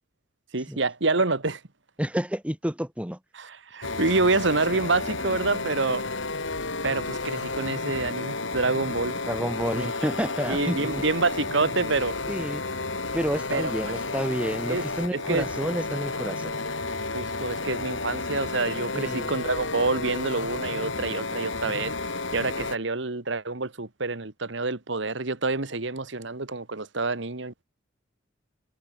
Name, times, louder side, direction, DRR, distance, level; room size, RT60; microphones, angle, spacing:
voice 1, 0.5-1.6 3.3-6.1 6.8-9.2 9.7-9.9 10.5-12.1 13.5-13.7 14.7-14.8 15.1-15.5 17.1-21.9 22.3-27.5, right 3 dB, 65° right, 1.7 m, -27 dB
voice 2, 2.0-3.2 9.3-11.0 12.3-12.6 13.1-16.6 18.9-19.3, equal, 5° right, 2.2 m, -30 dB
sound 1, 3.8-22.8, left 3 dB, 70° left, 4.2 m, -32 dB
head